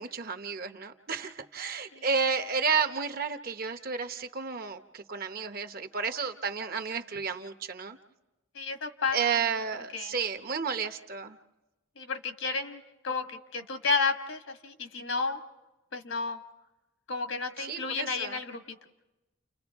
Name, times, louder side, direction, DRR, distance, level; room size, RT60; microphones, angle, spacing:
voice 1, 0.0-8.0 9.1-11.4 17.6-18.4, right 5 dB, 50° right, 8 dB, 0.8 m, -32 dB
voice 2, 8.5-9.2 9.9-10.1 12.0-15.4 15.9-16.4 17.1-18.8, left 4 dB, 75° left, 6 dB, 1.5 m, -32 dB
30.0 x 30.0 x 3.5 m, 1.1 s
head